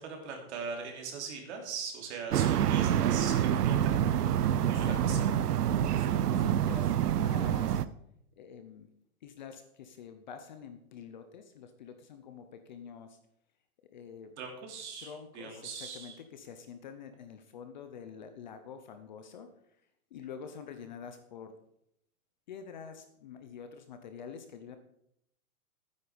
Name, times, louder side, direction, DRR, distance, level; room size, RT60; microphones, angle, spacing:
voice 1, 0.0-5.2 14.4-16.2, right 5 dB, 50° right, 2 dB, 3.2 m, -41 dB
sound 1, 2.3-7.8, right 10 dB, 90° right, 0.9 m, -27 dB
voice 2, 4.7-5.5 5.9-7.8 8.4-8.9 9.2-13.2 13.9-14.4 15.0-19.5 20.1-21.6 22.5-24.8, left 7 dB, 30° left, 8 dB, 0.7 m, -47 dB
12.5 x 9.6 x 5.1 m, 0.75 s
hypercardioid pair, 170°, 45 cm